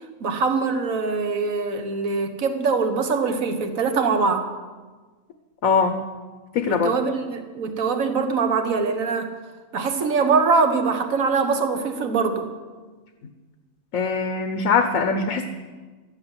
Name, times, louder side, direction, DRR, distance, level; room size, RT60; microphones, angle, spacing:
voice 1, 0.2-4.5 6.7-9.3 9.7-12.5, right 4 dB, 80° right, 6 dB, 1.6 m, -23 dB
voice 2, 5.6-6.0 6.5-6.9 13.9-15.5, left 5 dB, 80° left, 7 dB, 1.3 m, -22 dB
12.5 x 9.9 x 8.0 m, 1.3 s
omnidirectional pair, 1.4 m